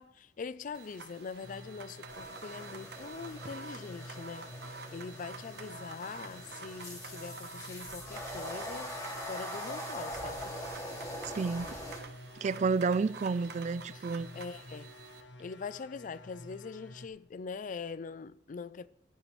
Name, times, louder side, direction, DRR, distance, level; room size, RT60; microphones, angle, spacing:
voice 1, 0.0-10.6 13.9-14.0 14.3-14.9 15.4-18.9, left 5 dB, 45° left, 0.4 m, -43 dB
sound 1, 0.7-15.2, right 4 dB, 65° right, 1.1 m, -49 dB
sound 2, 1.4-17.1, left 1 dB, 85° left, 1.1 m, -51 dB
sound 3, 2.1-12.0, equal, 20° left, 2.4 m, -43 dB
voice 2, 11.4-11.7 12.4-14.3, right 4 dB, 40° right, 0.3 m, -30 dB
15.0 x 10.5 x 3.2 m
head